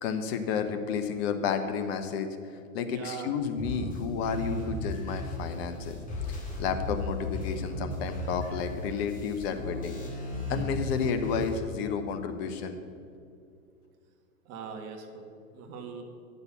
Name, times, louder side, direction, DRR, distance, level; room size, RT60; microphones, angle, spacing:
voice 1, 0.0-2.3 2.7-6.0 6.3-10.0 10.5-12.8, left 6 dB, 45° left, 8 dB, 1.0 m, -31 dB
voice 2, 2.9-3.3 14.4-15.3 15.5-16.0, right 6 dB, 40° right, 3 dB, 1.5 m, -40 dB
sound 1, 3.6-11.6, left 1 dB, 20° left, 2.4 m, -36 dB
9.7 x 6.7 x 6.0 m, 2.4 s
hypercardioid pair, 105°, 41 cm